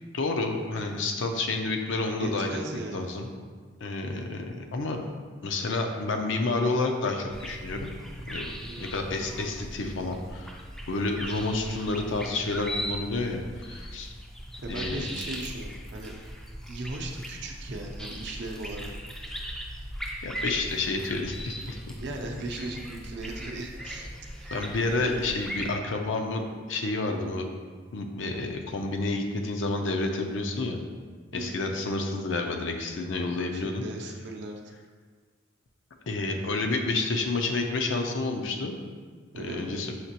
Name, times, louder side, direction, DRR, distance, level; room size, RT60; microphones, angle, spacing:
voice 1, 0.1-2.6 2.9-3.3 3.8-5.0 5.4-7.9 8.3-8.5 8.8-10.6 10.9-14.1 14.7-15.0 20.2-21.8 24.5-26.4 26.7-27.5 27.9-30.8 31.3-33.8 36.1-38.7 39.4-39.9, left 3 dB, 70° left, 3 dB, 0.5 m, -29 dB
voice 2, 2.1-3.2 8.7-9.1 14.6-16.1 16.7-18.9 21.9-24.1 24.3-24.6 31.3-31.7 33.3-34.6 39.3-40.0, right 2 dB, 60° right, 2 dB, 0.5 m, -38 dB
sound 1, 7.3-25.7, equal, 5° left, 0.3 m, -39 dB
5.8 x 2.9 x 2.8 m, 1.5 s
head